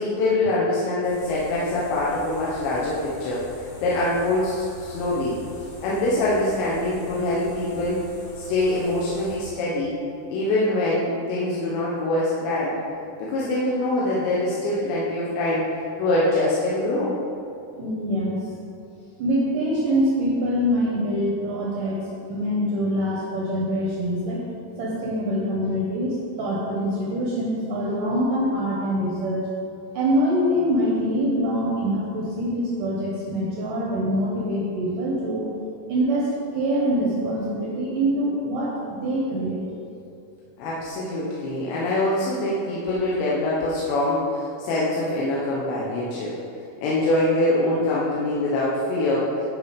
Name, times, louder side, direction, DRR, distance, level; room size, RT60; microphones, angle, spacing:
voice 1, 0.0-5.4 5.8-8.1 8.4-10.0 10.3-12.8 13.2-15.7 16.0-17.2 40.6-46.4 46.8-49.3, left 2 dB, 75° left, -6 dB, 3.1 m, -24 dB
sound 1, 1.0-9.4, left 1 dB, 55° left, 3.3 m, -43 dB
voice 2, 17.8-18.5 19.2-22.0 22.3-24.4 24.8-29.5 29.9-35.5 35.9-39.6, equal, 75° right, -4 dB, 1.9 m, -24 dB
9.6 x 5.6 x 5.2 m, 2.6 s
omnidirectional pair, 5.4 m